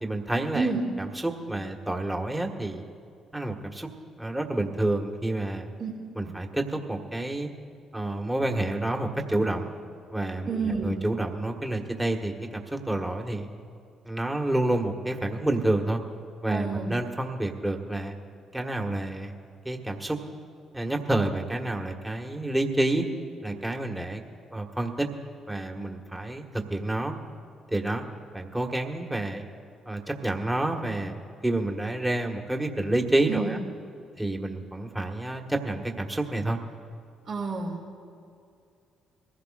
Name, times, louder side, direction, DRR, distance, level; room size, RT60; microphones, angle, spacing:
voice 1, 0.0-0.7 1.0-2.8 3.3-3.9 4.2-5.7 6.2-7.5 7.9-9.7 10.1-12.3 12.7-13.5 14.0-16.0 16.4-18.1 18.5-19.3 19.7-20.2 20.7-23.1 23.4-24.2 24.5-25.1 25.5-27.1 27.7-28.0 28.3-29.4 29.9-33.6 34.2-36.6, right 1 dB, 10° right, 3 dB, 1.7 m, -29 dB
voice 2, 10.5-10.9 16.5-16.9 33.3-33.6 37.3-37.8, right 4 dB, 55° right, -3 dB, 2.5 m, -29 dB
22.5 x 15.5 x 2.5 m, 2.4 s
hypercardioid pair, 50°, 0 cm